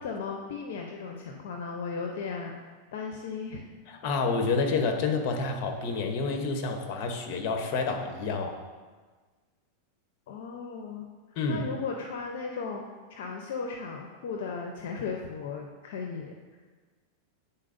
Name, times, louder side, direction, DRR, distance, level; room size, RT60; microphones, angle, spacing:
voice 1, 0.0-2.6 2.9-3.7 10.3-11.1 11.5-16.3, left 5 dB, 75° left, 2 dB, 0.6 m, -36 dB
voice 2, 3.9-8.6 11.4-11.7, left 4 dB, 50° left, 4 dB, 0.9 m, -29 dB
9.8 x 4.2 x 2.6 m, 1.4 s
supercardioid pair, 125°, 0 cm